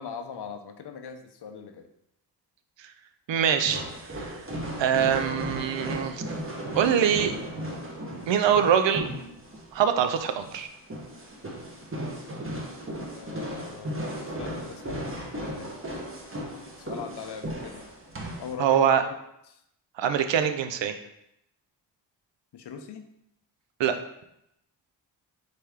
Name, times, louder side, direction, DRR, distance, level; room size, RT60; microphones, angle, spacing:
voice 1, 0.0-1.9 13.1-15.8 16.8-17.8 18.4-19.2 19.5-19.6 22.5-23.1, left 6 dB, 65° left, 6 dB, 0.6 m, -40 dB
voice 2, 3.3-4.4 4.8-6.2 6.8-7.3 8.3-9.1 9.7-10.7 18.6-19.0 20.0-21.0 23.8-24.0, right 8 dB, 75° right, 8 dB, 0.6 m, -24 dB
sound 1, 3.6-18.5, equal, 30° right, 1.0 m, -36 dB
4.2 x 3.4 x 3.5 m, 0.79 s
cardioid pair, 70°, 44 cm